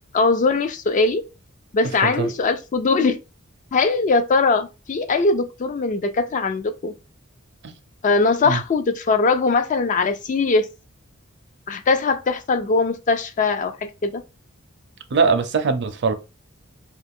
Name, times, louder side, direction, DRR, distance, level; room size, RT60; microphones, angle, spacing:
voice 1, 0.1-1.2 1.7-3.2 3.7-6.9 8.0-10.7 11.7-13.8 14.0-14.2, left 3 dB, 35° left, 0.3 m, -20 dB
voice 2, 15.1-16.1, right 4 dB, 55° right, 0.5 m, -21 dB
2.4 x 2.4 x 3.5 m
head